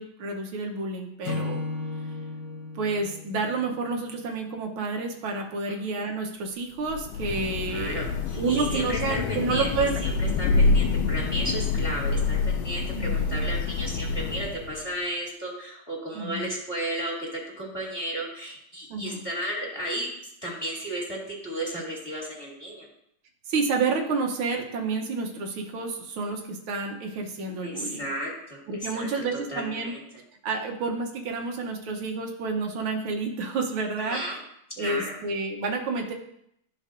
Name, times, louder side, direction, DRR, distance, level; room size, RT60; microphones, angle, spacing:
voice 1, 0.0-1.6 2.7-8.1 8.4-10.0 12.9-13.1 16.1-16.5 18.9-19.2 23.5-28.1 28.7-29.9 30.4-34.2 34.8-36.1, right 4 dB, 85° right, 2 dB, 1.8 m, -29 dB
Acoustic guitar / Strum, 1.2-4.6, left 3 dB, 45° left, 1.6 m, -35 dB
Thunder / Rain, 6.8-14.8, left 4 dB, 80° left, 1.4 m, -26 dB
voice 2, 7.7-9.7 10.0-20.1 20.4-22.9 27.6-28.6 28.9-30.0 34.0-34.4 34.8-35.2, right 1 dB, 10° left, -4 dB, 2.5 m, -34 dB
13.0 x 5.4 x 2.6 m, 0.74 s
omnidirectional pair, 2.2 m